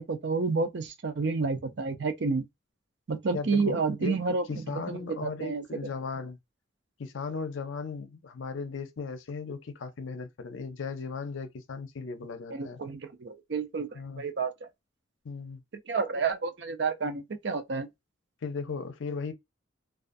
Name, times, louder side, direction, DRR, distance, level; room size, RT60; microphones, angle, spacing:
voice 1, 0.0-2.4 3.1-5.6 12.5-14.7 15.9-17.9, right 4 dB, 60° right, 0.5 m, -30 dB
voice 2, 3.3-4.2 4.5-6.4 7.0-12.8 13.9-14.2 15.2-15.6 18.4-19.3, left 4 dB, 75° left, 0.5 m, -37 dB
2.5 x 2.3 x 2.5 m
head